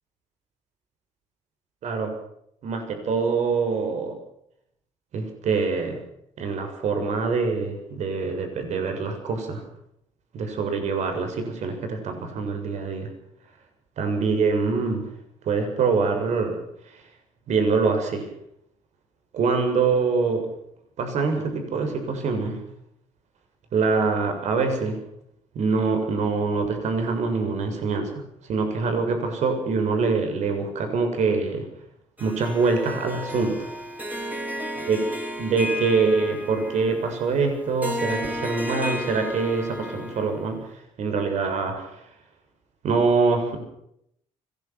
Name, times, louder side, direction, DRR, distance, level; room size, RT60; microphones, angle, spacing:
voice 1, 1.8-2.1 2.6-4.2 5.1-6.0 6.4-9.6 10.3-13.1 14.0-15.0 15.4-16.6 17.5-18.3 19.3-20.5 21.0-22.6 23.7-25.0 25.6-28.2 28.5-31.6 32.2-33.7 34.9-35.0 35.4-42.0 42.8-43.6, right 4 dB, 65° right, 5 dB, 7.2 m, -24 dB
Harp, 32.2-40.6, equal, 15° right, 5.2 m, -33 dB
25.0 x 19.5 x 6.3 m, 0.73 s
cardioid pair, 90°, 13 cm